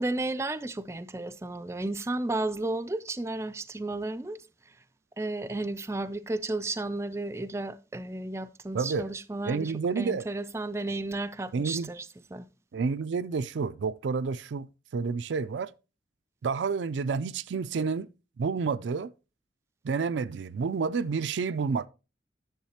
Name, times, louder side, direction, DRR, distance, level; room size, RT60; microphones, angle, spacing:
voice 1, 0.0-4.4 5.2-12.1 12.3-12.5, right 2 dB, 15° right, 0.3 m, -33 dB
voice 2, 8.7-9.1 9.5-10.2 11.5-11.9 12.7-15.7 16.4-18.1 18.4-19.1 19.8-21.9, right 5 dB, 85° right, 0.4 m, -29 dB
10.5 x 7.2 x 2.8 m
head